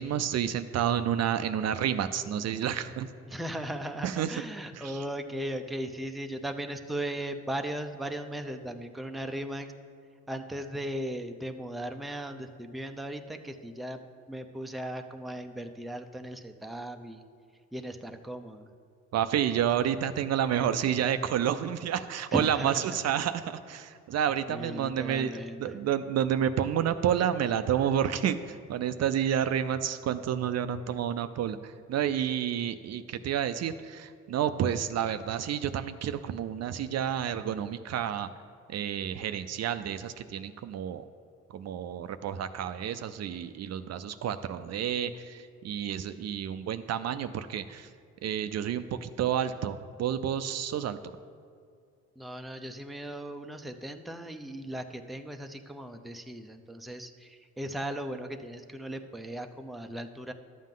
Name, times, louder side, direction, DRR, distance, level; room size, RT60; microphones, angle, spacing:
voice 1, 0.0-3.1 4.0-4.3 4.7-5.0 19.1-25.3 25.6-38.3 38.7-41.0 41.5-47.9 48.2-51.0, right 9 dB, 60° right, 11 dB, 0.5 m, -30 dB
voice 2, 3.3-9.7 10.3-14.0 14.3-17.2 17.7-18.7 22.3-23.0 24.5-25.8 52.2-60.3, right 1 dB, ahead, 6 dB, 0.5 m, -37 dB
12.0 x 7.4 x 3.8 m, 2.2 s
cardioid pair, 90°, 30 cm